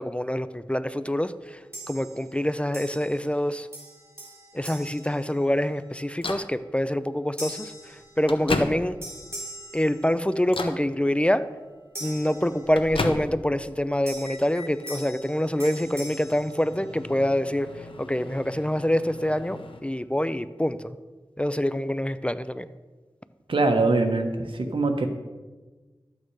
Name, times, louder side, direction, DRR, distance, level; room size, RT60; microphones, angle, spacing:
voice 1, 0.0-3.7 4.5-9.0 9.7-11.4 12.0-21.0 21.4-22.7, left 1 dB, 15° left, 13 dB, 0.5 m, -26 dB
sound 1, 1.7-2.4 2.7-3.4 3.7-5.9 6.4-6.7 7.4-8.7 9.0-10.6 11.9-13.1 14.1-17.3, right 1 dB, 30° right, 3.9 m, -42 dB
Microwave oven, 6.2-6.5 7.5-7.6 8.0-9.2 9.7-10.0 10.5-10.9 12.1-13.6 13.9-15.0 15.5-19.8, left 3 dB, 80° left, 1.1 m, -35 dB
voice 2, 23.5-25.1, right 3 dB, 75° right, 5 dB, 1.3 m, -23 dB
12.5 x 8.8 x 4.8 m, 1.3 s
wide cardioid pair, 50°, 9 cm